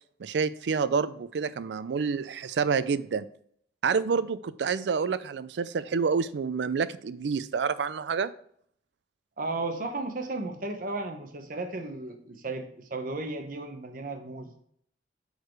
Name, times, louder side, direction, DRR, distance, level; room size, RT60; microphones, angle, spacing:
voice 1, 0.2-3.2 3.8-8.3, right 5 dB, 75° right, 0.4 m, -28 dB
voice 2, 9.4-14.5, right 2 dB, 50° right, 0.9 m, -34 dB
6.6 x 4.7 x 4.7 m
head